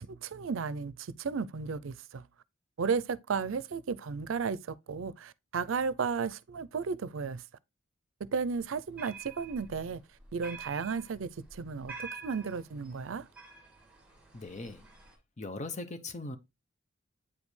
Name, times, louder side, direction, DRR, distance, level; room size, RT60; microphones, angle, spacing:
voice 1, 0.0-2.2 2.8-7.4 8.3-10.0 10.3-13.3, right 5 dB, 85° right, 0.5 m, -34 dB
sound 1, 8.6-15.2, right 4 dB, 5° right, 1.9 m, -48 dB
voice 2, 14.3-14.9 15.4-16.4, left 2 dB, 35° left, 0.8 m, -39 dB
8.5 x 5.2 x 3.2 m
head